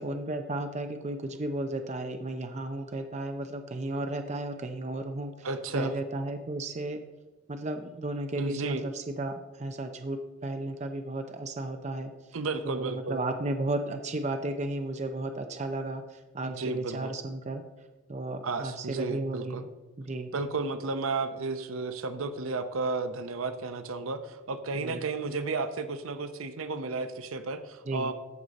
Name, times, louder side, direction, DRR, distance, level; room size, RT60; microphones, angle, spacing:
voice 1, 0.0-5.5 5.7-7.0 7.5-12.1 12.6-17.6 18.1-20.3 24.8-25.0 27.9-28.1, right 2 dB, 35° right, 6 dB, 0.6 m, -34 dB
voice 2, 5.4-5.9 8.4-8.8 12.3-13.2 16.4-17.1 18.4-19.6 20.3-28.1, right 3 dB, 75° right, 9 dB, 0.7 m, -33 dB
14.0 x 5.0 x 4.1 m, 1.1 s
head